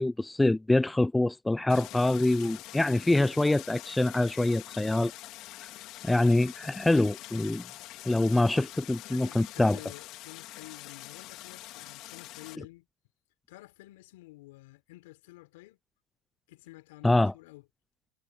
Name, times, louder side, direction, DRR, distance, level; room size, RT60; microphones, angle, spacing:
voice 1, 0.0-5.1 6.0-7.6 8.0-9.8 17.0-17.3, left 2 dB, 10° left, 0.4 m, -25 dB
Stream, 1.7-12.6, left 16 dB, 55° left, 3.3 m, -45 dB
voice 2, 8.2-8.7 9.0-12.9 13.5-15.8 16.5-17.6, left 20 dB, 75° left, 3.9 m, -51 dB
hypercardioid pair, 100°, 0 cm